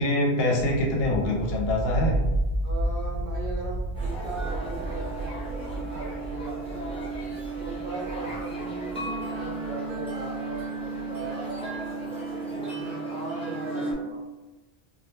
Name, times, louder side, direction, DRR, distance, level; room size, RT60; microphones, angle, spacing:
voice 1, 0.0-2.2, left 1 dB, 70° left, -1 dB, 0.7 m, -24 dB
sound 1, 0.6-11.3, right 1 dB, 85° right, 0.9 m, -32 dB
voice 2, 2.6-7.1 7.6-11.6 12.5-14.2, right 2 dB, 55° right, -3 dB, 0.7 m, -38 dB
sound 2, 3.9-13.9, right 3 dB, 5° left, 0.5 m, -34 dB
2.1 x 2.1 x 3.0 m, 1.1 s
omnidirectional pair, 1.1 m